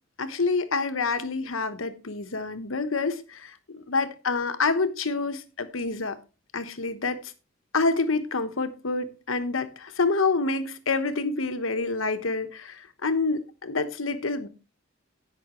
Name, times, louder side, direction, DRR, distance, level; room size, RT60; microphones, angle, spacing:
voice 1, 0.2-6.2 6.5-7.3 7.7-14.5, left 3 dB, 85° left, 1.2 m, -27 dB
17.0 x 6.0 x 3.1 m
head